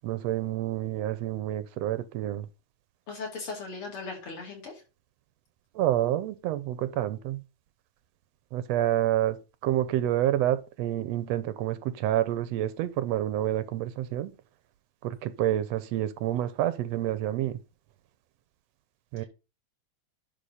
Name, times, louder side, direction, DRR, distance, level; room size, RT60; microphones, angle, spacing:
voice 1, 0.0-2.5 5.7-7.4 8.5-9.4 9.6-14.3 15.0-17.6 19.1-19.2, right 13 dB, 75° right, 1.7 m, -28 dB
voice 2, 3.1-4.8 19.2-19.3, left 4 dB, 50° left, 3.6 m, -38 dB
10.5 x 4.1 x 5.5 m
omnidirectional pair, 3.3 m